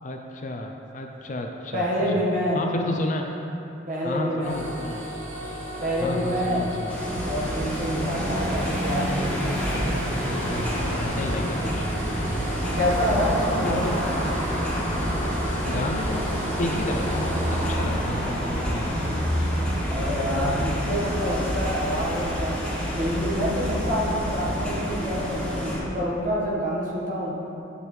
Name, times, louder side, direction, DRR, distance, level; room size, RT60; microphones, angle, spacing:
voice 1, 0.0-2.2 2.5-3.3 4.0-5.0 6.0-7.0 10.1-11.9 13.6-14.0 15.6-19.1, left 1 dB, 40° left, 3 dB, 0.5 m, -31 dB
voice 2, 1.7-2.6 3.9-4.6 5.8-6.7 7.2-9.5 12.5-14.4 19.9-22.6 23.0-27.3, equal, 40° right, -5 dB, 1.5 m, -27 dB
sound 1, 4.4-17.7, right 1 dB, 85° right, 1.9 m, -35 dB
sound 2, 6.9-25.8, equal, 5° left, 1.6 m, -27 dB
9.7 x 7.4 x 3.3 m, 2.9 s
head